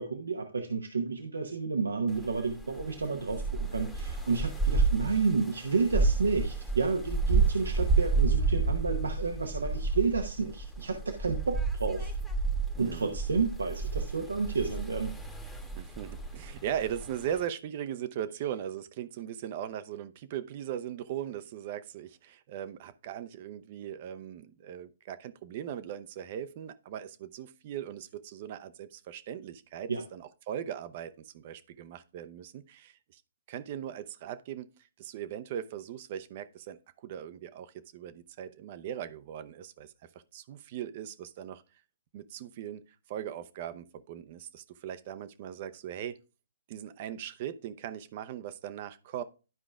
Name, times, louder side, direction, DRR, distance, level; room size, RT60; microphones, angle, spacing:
voice 1, 0.0-12.1 12.8-15.2 29.9-30.0, right 4 dB, 85° right, 4 dB, 0.9 m, -31 dB
sound 1, 2.1-17.5, right 4 dB, ahead, 1.1 m, -31 dB
voice 2, 12.7-13.2 15.8-33.2 33.5-39.9 40.3-41.6 42.1-42.8 43.1-46.2 46.7-49.2, right 10 dB, 45° right, 12 dB, 0.7 m, -39 dB
12.0 x 4.9 x 2.4 m, 0.33 s
hypercardioid pair, 130°, 0 cm